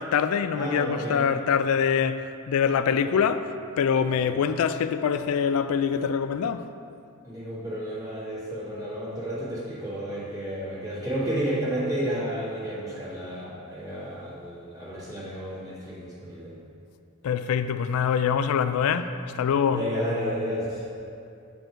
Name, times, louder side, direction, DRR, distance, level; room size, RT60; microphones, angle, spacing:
voice 1, 0.0-3.5 3.8-6.6 17.2-19.8, left 7 dB, 75° left, 0.3 m, -24 dB
voice 2, 0.5-1.3 2.9-3.2 4.1-4.4 7.2-16.6 19.7-20.8, equal, 15° right, 1.6 m, -32 dB
8.1 x 4.5 x 4.5 m
head